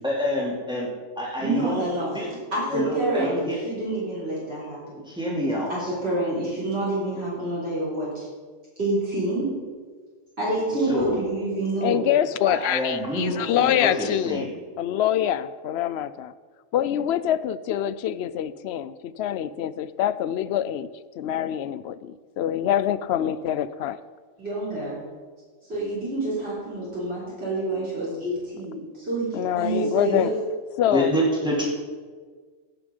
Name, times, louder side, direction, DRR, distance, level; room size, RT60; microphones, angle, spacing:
voice 1, 0.0-0.9 1.2-1.9 2.1-2.3 2.7-3.7 5.1-5.9 10.8-11.2 12.5-13.3 13.6-14.5 30.9-31.6, equal, 5° right, -4 dB, 2.7 m, -26 dB
voice 2, 1.4-2.1 2.5-5.0 5.7-8.3 8.8-9.5 10.4-12.0 13.2-13.5 24.4-25.0 25.7-30.3, right 1 dB, 55° right, -9 dB, 3.9 m, -28 dB
voice 3, 11.8-14.5 14.8-16.3 16.7-20.9 21.2-24.0 29.3-30.3 30.8-31.1, left 11 dB, 65° left, 15 dB, 0.7 m, -25 dB
16.0 x 6.9 x 5.3 m, 1.6 s
omnidirectional pair, 1.3 m